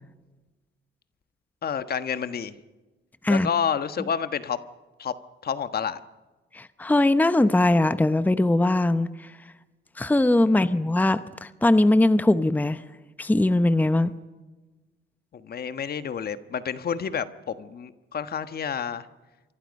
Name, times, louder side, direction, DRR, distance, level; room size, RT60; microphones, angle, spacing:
voice 1, 1.6-2.5 3.3-4.6 5.0-5.1 5.4-6.0 10.4-10.8 15.3-19.1, left 7 dB, 50° left, 11 dB, 1.3 m, -29 dB
voice 2, 6.5-9.3 10.0-12.8 13.2-14.1, left 2 dB, 10° left, 12 dB, 0.8 m, -21 dB
28.5 x 24.5 x 5.4 m, 1.2 s
cardioid pair, 90°, 20 cm